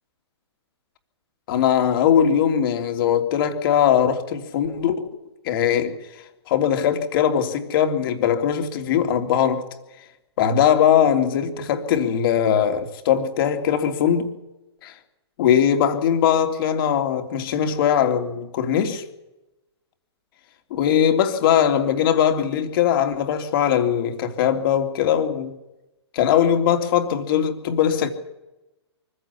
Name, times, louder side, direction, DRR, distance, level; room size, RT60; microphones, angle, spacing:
voice 1, 1.5-5.0 5.4-6.0 6.5-9.7 10.4-14.3 14.8-14.9 15.4-19.0 20.7-25.5 26.1-28.1, left 9 dB, 50° left, 3.2 m, -20 dB
24.0 x 15.5 x 8.5 m
hypercardioid pair, 130°, 15 cm